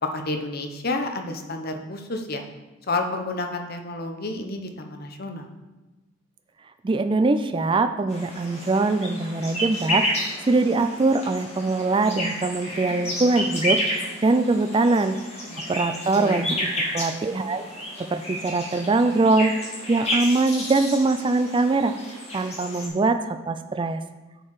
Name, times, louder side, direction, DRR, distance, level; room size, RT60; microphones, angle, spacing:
voice 1, 0.0-2.4 2.9-5.5 15.5-15.7 16.0-17.0, left 2 dB, 50° left, 5 dB, 0.8 m, -30 dB
voice 2, 6.8-15.2 15.7-16.7 16.9-17.7 18.0-19.5 19.9-21.9 22.3-24.0, right 3 dB, 25° right, 9 dB, 0.3 m, -22 dB
sound 1, 8.1-22.9, equal, 30° left, 1.9 m, -31 dB
8.8 x 4.7 x 4.7 m, 1.1 s
head